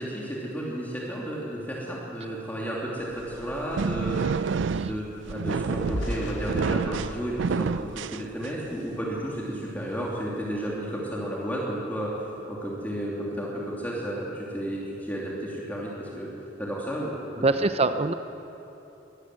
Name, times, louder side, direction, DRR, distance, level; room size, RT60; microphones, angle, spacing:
voice 1, 0.0-4.4 4.8-12.1 12.5-16.3 16.6-17.7, right 1 dB, 10° left, -5 dB, 3.0 m, -32 dB
sound 1, 3.1-8.8, right 5 dB, 90° right, 0.4 m, -29 dB
sound 2, 3.4-8.8 9.3-9.5 9.9-10.1, left 1 dB, 80° left, 1.8 m, -39 dB
voice 2, 17.4-18.1, right 3 dB, 35° right, 10 dB, 0.6 m, -24 dB
22.5 x 14.0 x 9.7 m, 3.0 s
head